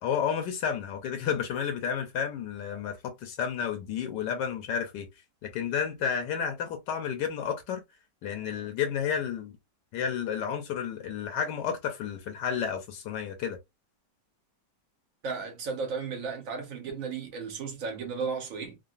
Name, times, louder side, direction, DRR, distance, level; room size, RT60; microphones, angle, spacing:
voice 1, 0.0-5.1 5.4-7.8 8.2-9.6 9.9-13.6, left 7 dB, 75° left, 1.3 m, -31 dB
voice 2, 15.2-18.8, right 5 dB, 60° right, 1.0 m, -34 dB
3.8 x 2.1 x 2.4 m
omnidirectional pair, 1.9 m